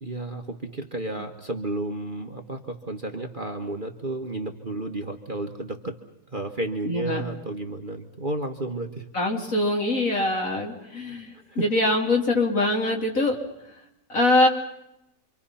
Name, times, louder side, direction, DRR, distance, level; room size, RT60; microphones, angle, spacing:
voice 1, 0.0-6.0 6.3-9.1 10.8-10.9 11.5-11.7, right 2 dB, 30° right, 4 dB, 1.5 m, -32 dB
voice 2, 6.8-7.2 9.1-11.3 11.6-13.4 14.1-14.5, left 2 dB, 50° left, 1 dB, 3.8 m, -23 dB
28.0 x 25.0 x 5.7 m, 0.83 s
omnidirectional pair, 1.8 m